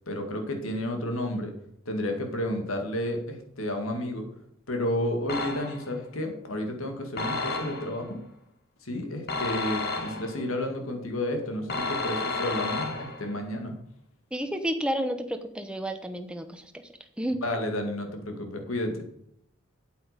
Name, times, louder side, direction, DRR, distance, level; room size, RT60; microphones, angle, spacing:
voice 1, 0.1-1.5 1.9-4.3 4.7-8.2 8.8-13.7 17.4-19.0, left 1 dB, 80° left, 4 dB, 2.2 m, -31 dB
sound 1, 5.3-6.0 7.2-8.1 9.3-10.5 11.7-13.4, left 3 dB, 50° left, 1.7 m, -31 dB
voice 2, 14.3-16.6 17.2-17.4, equal, 5° right, 7 dB, 0.8 m, -30 dB
8.5 x 8.3 x 5.1 m, 0.70 s
head